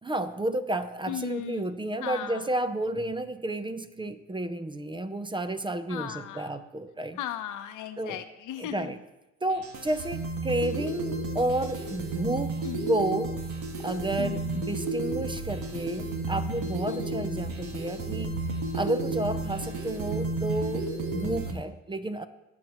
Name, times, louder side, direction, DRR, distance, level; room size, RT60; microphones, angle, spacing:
voice 1, 0.0-7.2 8.0-8.2 8.6-9.0 9.4-13.4 13.8-18.4 18.7-20.9 21.1-22.3, right 1 dB, 15° right, 11 dB, 0.6 m, -31 dB
voice 2, 1.1-1.7 2.0-2.5 5.9-6.6 7.1-8.9 12.6-12.9 14.2-14.6 16.9-17.2, left 11 dB, 85° left, 8 dB, 0.9 m, -37 dB
sound 1, 9.5-21.5, right 2 dB, 80° right, 1.7 m, -32 dB
18.5 x 7.7 x 3.1 m, 0.97 s
cardioid pair, 90°, 30 cm